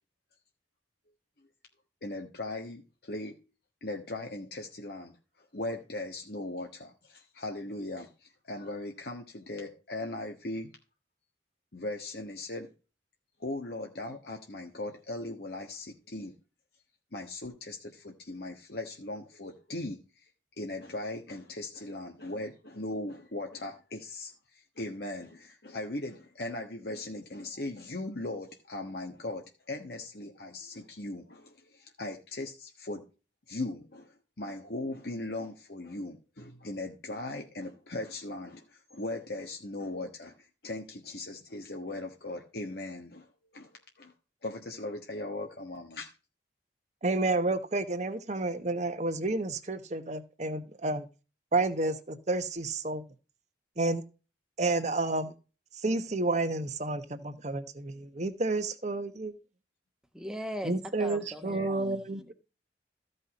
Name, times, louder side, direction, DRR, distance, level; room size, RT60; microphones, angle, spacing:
voice 1, 2.0-3.4 3.8-10.7 11.7-12.7 13.4-16.3 17.1-20.3 20.6-33.0 33.5-44.1 44.4-46.1 61.5-61.7, left 2 dB, 60° left, 1.3 m, -39 dB
voice 2, 47.0-51.1 51.5-53.0 53.8-54.0 54.6-55.3 55.8-59.4 60.6-62.2, right 2 dB, 40° right, 1.1 m, -30 dB
voice 3, 60.1-62.3, equal, 5° right, 1.2 m, -40 dB
14.5 x 5.5 x 4.1 m
head